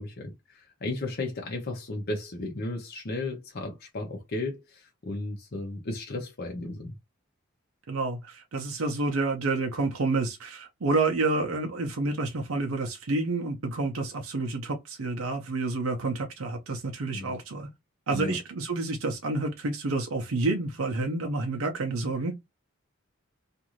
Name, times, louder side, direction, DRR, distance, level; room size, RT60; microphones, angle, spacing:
voice 1, 0.0-6.9 17.1-17.4 18.1-18.4, left 2 dB, 50° left, 0.8 m, -34 dB
voice 2, 7.9-17.7 18.1-22.3, right 3 dB, 90° right, 0.7 m, -29 dB
2.6 x 2.5 x 3.0 m
head